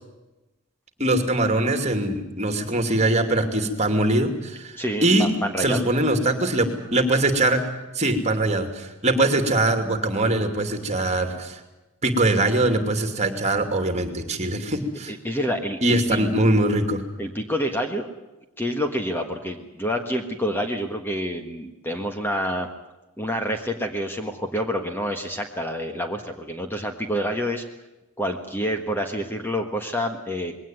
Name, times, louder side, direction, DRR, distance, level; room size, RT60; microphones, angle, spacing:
voice 1, 1.0-4.8 5.0-5.3 5.6-7.6 7.9-11.6 12.0-15.1 15.8-17.0, right 2 dB, 30° right, 7 dB, 2.7 m, -22 dB
voice 2, 4.8-5.9 15.1-16.2 17.2-18.1 18.6-22.7 23.2-27.6 28.2-30.5, equal, 10° left, 5 dB, 1.5 m, -28 dB
21.5 x 18.0 x 9.3 m, 1.0 s
head